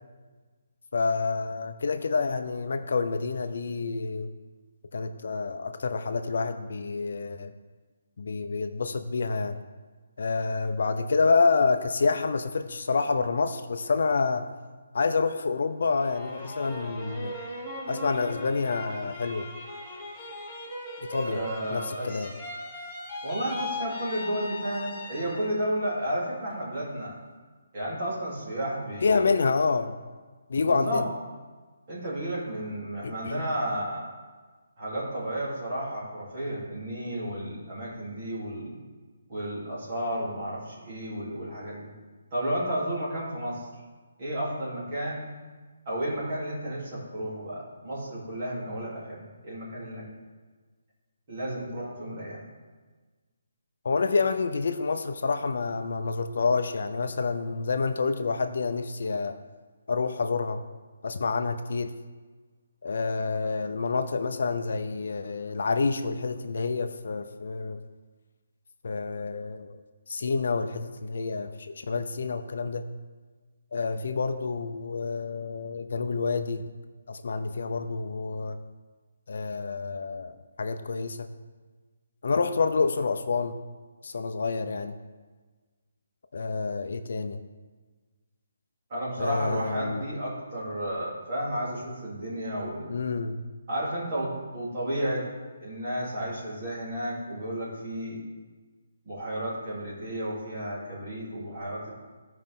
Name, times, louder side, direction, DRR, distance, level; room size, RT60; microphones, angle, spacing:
voice 1, 0.9-4.3 4.9-7.5 8.2-9.6 10.2-14.5 14.9-17.4 17.9-19.5 21.0-21.4 21.7-22.3 29.0-30.0 30.5-31.1 33.0-33.5 53.8-59.4 59.9-60.6 61.0-61.9 62.8-67.8 68.8-69.8 70.1-72.9 73.7-76.6 77.1-78.6 79.3-81.3 82.2-83.6 84.0-84.9 86.3-87.4 89.2-90.0 92.9-93.4, left 4 dB, 55° left, 8 dB, 0.5 m, -28 dB
sound 1, 15.9-25.7 26.1-26.8, left 1 dB, 10° left, 1.1 m, -39 dB
voice 2, 21.2-22.3 23.2-27.2 27.7-29.2 30.6-31.0 31.9-34.1 34.8-38.8 39.3-41.9 42.3-43.7 44.2-45.3 45.8-50.0 51.3-52.5 88.9-92.9 93.7-95.2 95.6-98.2 99.0-101.9, right 1 dB, 30° right, -7 dB, 3.1 m, -32 dB
15.5 x 5.3 x 3.7 m, 1.4 s
hypercardioid pair, 175°, 0 cm